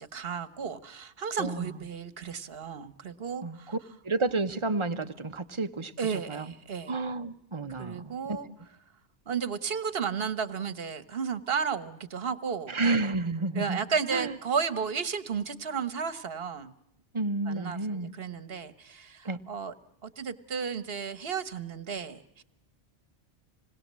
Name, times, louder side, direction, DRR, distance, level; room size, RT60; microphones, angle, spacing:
voice 1, 0.0-3.7 6.0-6.9 7.8-8.5 9.3-12.8 13.6-16.7 17.5-19.7 20.0-22.4, right 6 dB, 60° right, 14 dB, 1.4 m, -33 dB
voice 2, 1.4-1.8 3.4-3.8 4.0-5.9 6.3-6.5 6.9-8.4 12.7-13.8 14.1-14.4 17.1-18.1 19.2-19.4, right 3 dB, 30° right, 8 dB, 1.0 m, -30 dB
27.0 x 20.5 x 7.5 m, 0.82 s
omnidirectional pair, 1.2 m